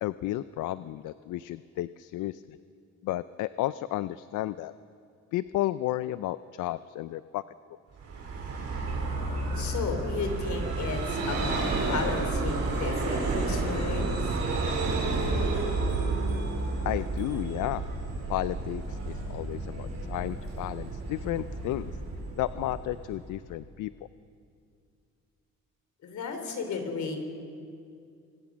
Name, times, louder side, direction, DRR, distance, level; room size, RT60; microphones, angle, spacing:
voice 1, 0.0-2.6 3.0-4.7 5.3-7.4 16.8-17.9 18.3-21.9 22.4-23.9, left 15 dB, 85° left, 15 dB, 0.5 m, -32 dB
Vehicle, 8.0-23.4, right 3 dB, 60° right, 5.5 m, -31 dB
voice 2, 9.6-14.4 26.0-27.2, left 4 dB, 65° left, 6 dB, 3.7 m, -34 dB
25.5 x 21.0 x 6.3 m, 2.4 s
cardioid pair, 90°, 30 cm